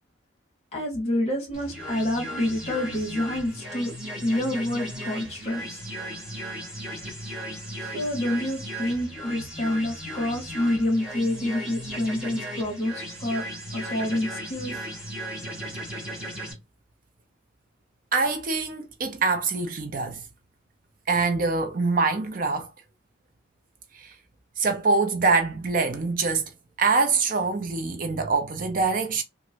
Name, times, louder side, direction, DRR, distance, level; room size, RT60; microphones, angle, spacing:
voice 1, 0.7-3.9 4.2-5.8 7.8-13.4 13.7-14.9, left 1 dB, 30° left, 1.4 m, -28 dB
sound 1, 1.5-16.5, equal, 5° right, 1.2 m, -36 dB
voice 2, 18.1-20.2 21.1-22.7 24.0-24.1 24.6-26.5 26.8-29.2, right 4 dB, 40° right, 0.5 m, -24 dB
2.9 x 2.5 x 2.7 m
head